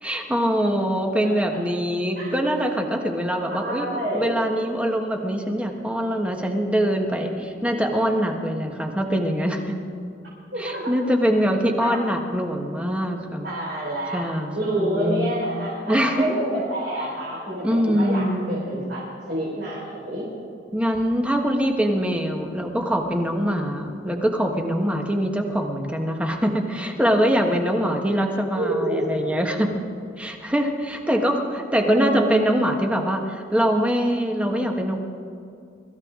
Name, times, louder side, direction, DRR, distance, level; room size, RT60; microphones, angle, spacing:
voice 1, 0.0-9.8 10.6-13.5 14.1-15.3 15.9-16.3 17.6-18.6 20.7-29.8 30.2-35.0, equal, 5° right, 3 dB, 1.3 m, -23 dB
voice 2, 3.5-4.5 10.5-10.9 11.8-12.0 13.4-14.3 14.5-20.3 28.5-29.0 31.8-32.4, right 1 dB, 60° right, -8 dB, 4.7 m, -28 dB
24.5 x 14.0 x 3.8 m, 2.5 s
head